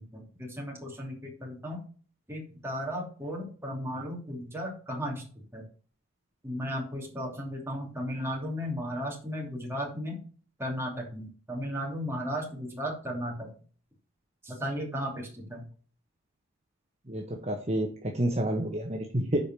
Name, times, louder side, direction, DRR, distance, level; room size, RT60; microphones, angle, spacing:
voice 1, 0.1-1.8 2.3-5.3 5.5-5.6 6.4-10.2 10.6-13.5 14.4-15.6, equal, 10° right, -1 dB, 2.8 m, -35 dB
voice 2, 17.1-17.9 18.1-19.4, right 1 dB, 30° right, 0 dB, 1.3 m, -29 dB
8.2 x 5.1 x 6.3 m, 0.41 s
head